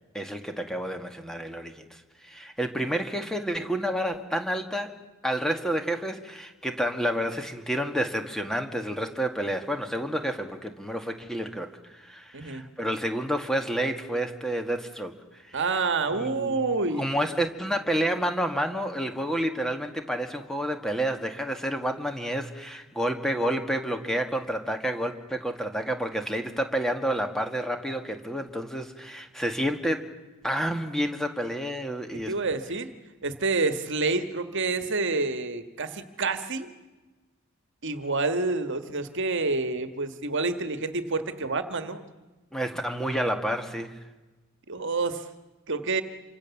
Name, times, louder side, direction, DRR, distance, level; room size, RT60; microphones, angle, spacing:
voice 1, 0.1-1.9 2.2-4.9 5.2-15.1 15.4-15.9 16.1-16.6 16.9-30.1 30.4-32.4 42.5-44.0, equal, ahead, 6 dB, 1.8 m, -29 dB
voice 2, 12.3-12.6 15.5-17.1 32.3-32.9 33.2-36.7 37.8-42.0 44.7-45.2 45.7-46.0, right 3 dB, 55° right, 10 dB, 1.6 m, -28 dB
27.5 x 25.0 x 7.1 m, 1.2 s
head